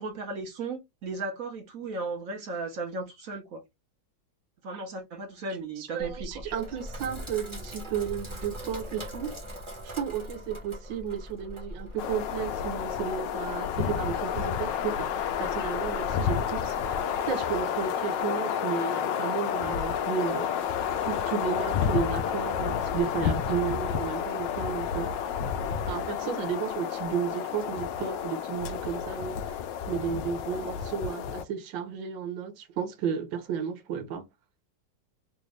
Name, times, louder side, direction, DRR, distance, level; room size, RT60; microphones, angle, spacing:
voice 1, 0.0-3.6 4.6-6.5 26.8-26.9, right 3 dB, 55° right, 1.1 m, -36 dB
voice 2, 5.8-9.3 9.8-20.5 21.0-25.1 25.9-34.2, right 7 dB, 75° right, 1.5 m, -33 dB
Sink (filling or washing), 6.0-17.0, equal, 20° right, 1.0 m, -42 dB
sound 1, 12.0-31.4, left 8 dB, 75° left, 1.1 m, -30 dB
3.6 x 2.5 x 3.2 m
omnidirectional pair, 2.2 m